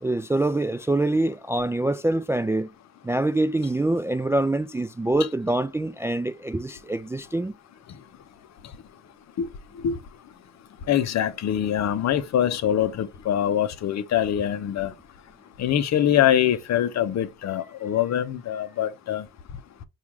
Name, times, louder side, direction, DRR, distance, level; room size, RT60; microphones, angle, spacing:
voice 1, 0.0-2.7 3.0-7.5, right 2 dB, 10° right, 0.3 m, -25 dB
voice 2, 10.9-14.9 15.6-19.2, left 10 dB, 50° left, 0.6 m, -24 dB
4.5 x 2.4 x 3.5 m
supercardioid pair, 65°, 34 cm